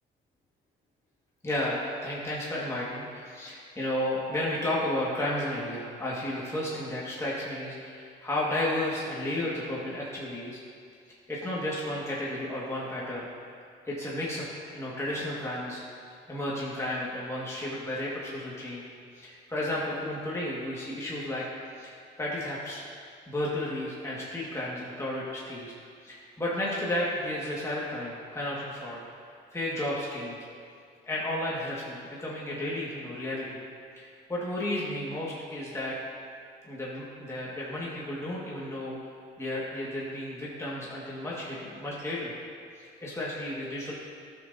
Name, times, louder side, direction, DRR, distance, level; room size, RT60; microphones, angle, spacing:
voice 1, 1.4-10.6 11.3-13.3 13.9-14.4 14.7-15.8 16.3-18.9 19.1-21.4 21.8-22.8 23.3-25.7 26.0-29.0 29.5-30.4 31.0-33.6 34.0-35.9 36.6-39.0 39.4-42.3 43.0-43.9, left 1 dB, 15° left, -6 dB, 1.7 m, -33 dB
12.5 x 6.2 x 2.7 m, 2.3 s
cardioid pair, 90°, 20 cm